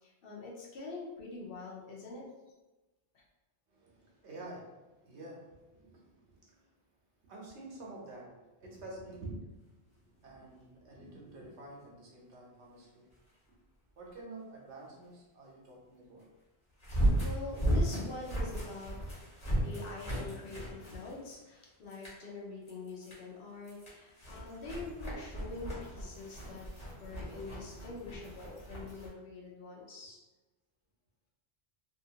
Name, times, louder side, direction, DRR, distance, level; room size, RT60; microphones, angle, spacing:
voice 1, 0.0-2.2 3.1-3.2 16.9-18.9 19.6-26.6 27.0-30.2, left 3 dB, 60° left, -2 dB, 0.8 m, -45 dB
voice 2, 3.7-6.7 7.2-13.1 14.0-16.3, right 2 dB, 85° right, -3 dB, 1.1 m, -49 dB
sound 1, 10.3-10.4 16.8-21.5 21.9-22.2 22.7-23.2 23.6-29.1, right 1 dB, 35° left, 1.1 m, -35 dB
2.7 x 2.4 x 2.8 m, 1.1 s
omnidirectional pair, 1.1 m